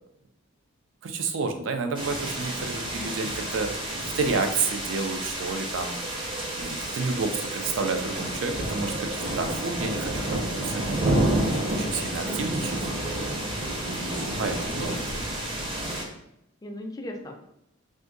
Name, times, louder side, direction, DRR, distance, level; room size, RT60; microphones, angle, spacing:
voice 1, 1.0-3.7 4.2-6.0 6.6-12.8 13.9-15.0, right 4 dB, 70° right, 6 dB, 0.4 m, -30 dB
sound 1, 1.9-16.0, right 1 dB, 25° right, 0.6 m, -30 dB
voice 2, 2.9-3.3 13.7-15.3 16.6-17.4, left 1 dB, 20° left, 2 dB, 0.3 m, -40 dB
2.6 x 2.4 x 3.8 m, 0.79 s
head